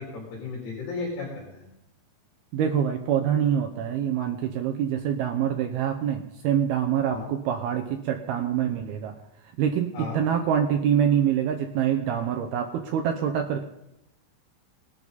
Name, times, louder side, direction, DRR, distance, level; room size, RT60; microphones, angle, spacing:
voice 1, 0.0-1.7 7.1-7.3 9.9-10.2, left 4 dB, 65° left, -3 dB, 5.4 m, -34 dB
voice 2, 2.5-9.1 9.6-13.6, right 9 dB, 75° right, 5 dB, 2.4 m, -25 dB
20.0 x 12.0 x 4.1 m, 0.86 s
omnidirectional pair, 5.2 m